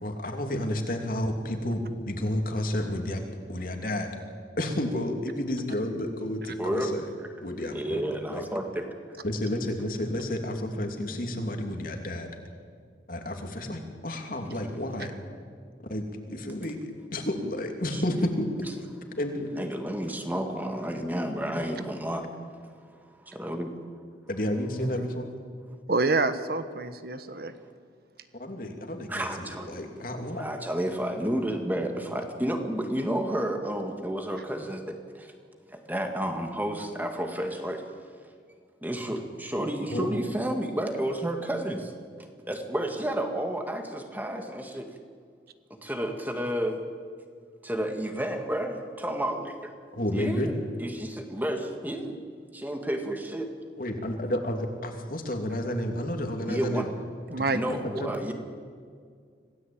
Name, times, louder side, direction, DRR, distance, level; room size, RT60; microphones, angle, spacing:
voice 1, 0.0-3.2 3.5-4.1 4.6-7.1 7.4-8.0 8.3-8.4 9.2-12.3 13.1-15.1 15.8-18.5 19.2-19.6 24.3-25.3 28.4-30.4 39.9-40.1 49.9-50.5 53.8-56.9 57.4-57.5 58.0-58.1, left 1 dB, 50° left, 4 dB, 2.9 m, -31 dB
voice 2, 6.6-6.9 7.7-8.9 17.9-18.2 19.5-22.3 22.9-23.7 29.1-29.8 30.3-35.3 35.7-37.8 38.8-41.9 42.2-44.9 45.8-46.8 47.6-49.7 50.1-52.2 52.5-53.5 56.4-56.9 57.5-58.3, right 1 dB, 10° right, 4 dB, 2.0 m, -31 dB
voice 3, 25.9-27.5 57.3-57.6, right 3 dB, 55° right, 11 dB, 1.2 m, -27 dB
26.0 x 17.5 x 8.8 m, 2.1 s
head